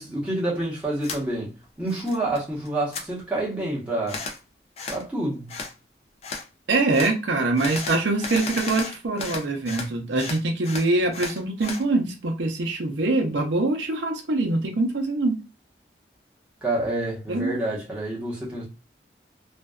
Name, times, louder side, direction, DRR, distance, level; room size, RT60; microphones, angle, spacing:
voice 1, 0.0-4.2 4.9-5.6 16.6-18.7, right 1 dB, 5° right, 0.9 m, -28 dB
sound 1, 1.0-1.2 1.6-2.4 2.7-3.1 4.1-4.4 4.8-5.0 5.5-5.7 6.2-6.5 6.9-7.1 7.6-9.9 10.2-11.8, left 4 dB, 35° left, 0.4 m, -34 dB
voice 2, 6.7-15.4 17.3-17.5, right 2 dB, 90° right, 0.6 m, -24 dB
2.5 x 2.2 x 2.2 m
head